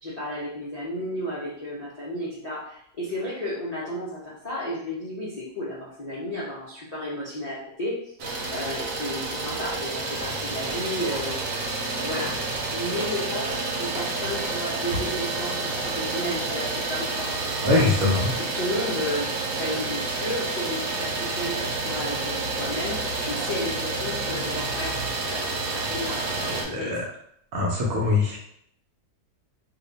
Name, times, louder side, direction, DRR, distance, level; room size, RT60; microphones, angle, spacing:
voice 1, 0.0-8.1 8.5-11.4 11.7-12.3 12.7-19.3 19.6-25.0 25.2-26.9, left 1 dB, 50° left, -9 dB, 0.5 m, -33 dB
Idling, 8.2-26.6, right 3 dB, 85° right, 1.3 m, -29 dB
sound 1, 8.8-8.9 9.2-9.4 9.7-9.8 10.1-10.3 10.7-10.8 11.1-11.3 11.6-11.7 12.1-12.2 12.5-12.7 13.0-13.1 13.5-13.7 13.9-14.1 14.4-14.5 14.9-15.0 15.4-15.5 15.8-16.0 16.3-16.4 16.8-16.9 17.3-17.4 17.7-17.8, equal, 5° right, 0.6 m, -42 dB
voice 2, 17.6-18.3 26.4-27.0 27.5-28.4, left 2 dB, 65° right, -2 dB, 1.0 m, -23 dB
2.8 x 2.3 x 3.9 m, 0.70 s
omnidirectional pair, 1.8 m